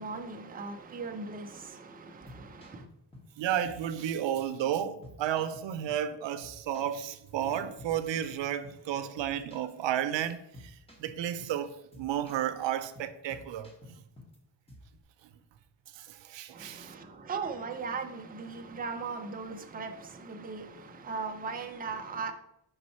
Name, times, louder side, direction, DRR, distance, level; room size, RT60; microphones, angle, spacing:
voice 1, 0.0-2.9 16.5-22.3, right 4 dB, 20° right, 0.5 m, -38 dB
sound 1, 2.1-3.3 3.6-4.2 4.5-4.6 5.0-6.1 6.4-8.9 9.2-9.7 10.0-10.2 10.5-11.6 11.9-12.5 12.8-14.4 14.7-15.0, left 1 dB, 15° left, 1.3 m, -52 dB
voice 2, 3.4-13.7 15.9-16.9, right 10 dB, 85° right, 0.6 m, -32 dB
5.4 x 4.6 x 4.2 m
wide cardioid pair, 140°, 43 cm